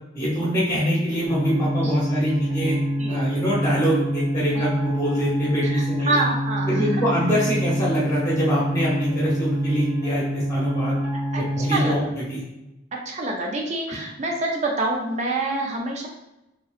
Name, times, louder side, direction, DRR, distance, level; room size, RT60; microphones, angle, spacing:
voice 1, 0.1-2.8 3.1-6.3 6.7-11.0 11.3-12.4 13.9-14.0, equal, 15° left, -6 dB, 0.9 m, -24 dB
sound 1, 1.3-11.9, equal, 60° right, 0.9 m, -26 dB
voice 2, 2.6-3.2 4.6-4.7 5.6-7.0 11.3-12.0 12.9-16.1, right 2 dB, 35° right, 0 dB, 0.4 m, -27 dB
2.9 x 2.8 x 2.4 m, 0.93 s
head